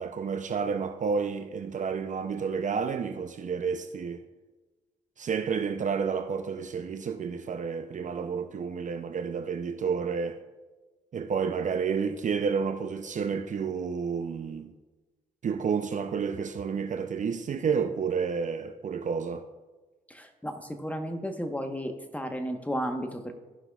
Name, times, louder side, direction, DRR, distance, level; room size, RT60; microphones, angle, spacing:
voice 1, 0.0-4.2 5.2-10.4 11.1-14.7 15.4-19.4, right 6 dB, 45° right, 0.5 m, -30 dB
voice 2, 20.1-23.3, equal, 10° left, 1.1 m, -33 dB
14.0 x 5.7 x 2.3 m
supercardioid pair, 55°, 17 cm